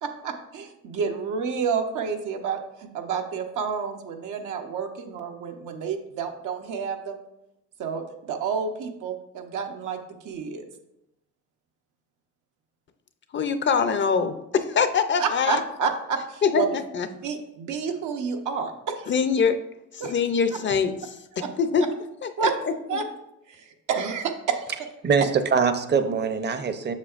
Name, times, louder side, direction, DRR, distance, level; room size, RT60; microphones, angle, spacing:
voice 1, 0.0-7.2 7.8-10.0 10.2-10.6 15.2-16.7 17.2-19.1 20.0-20.2 21.4-21.5 22.4-22.5 22.9-23.0 23.5-24.7, right 6 dB, 80° right, 4 dB, 0.9 m, -29 dB
voice 2, 13.3-15.6 16.4-17.1 19.1-19.6 19.9-21.8 22.2-23.0, left 6 dB, 40° left, 10 dB, 0.5 m, -24 dB
voice 3, 25.0-26.9, right 5 dB, 35° right, 9 dB, 0.7 m, -23 dB
7.4 x 6.4 x 2.4 m, 0.86 s
cardioid pair, 90°, 30 cm